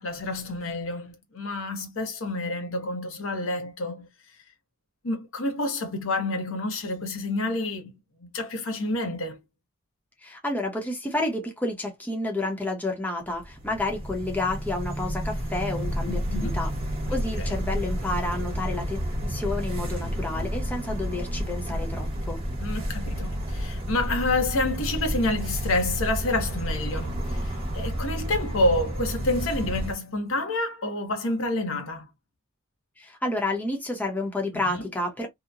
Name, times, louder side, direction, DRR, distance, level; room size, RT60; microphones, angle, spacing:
voice 1, 0.0-4.1 5.0-7.9 8.2-9.4 16.1-16.6 17.1-17.5 22.6-32.1 34.5-34.8, left 2 dB, 80° left, 0.8 m, -28 dB
voice 2, 10.2-16.7 17.1-22.4 33.0-35.3, left 2 dB, 10° left, 0.7 m, -30 dB
sound 1, 13.3-29.9, equal, 30° right, 1.0 m, -30 dB
2.8 x 2.1 x 2.4 m
head